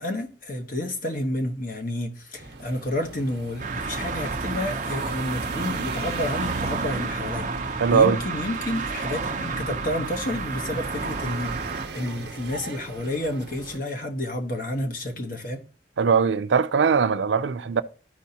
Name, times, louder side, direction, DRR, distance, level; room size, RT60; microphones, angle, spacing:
voice 1, 0.0-15.6, left 1 dB, 50° left, 1.1 m, -30 dB
sound 1, 2.4-13.8, right 3 dB, 70° right, 0.9 m, -40 dB
sound 2, 3.6-11.9, right 4 dB, 45° right, 0.7 m, -30 dB
voice 2, 7.8-8.2 16.0-17.8, right 6 dB, 85° right, 0.4 m, -20 dB
13.0 x 4.5 x 2.8 m
head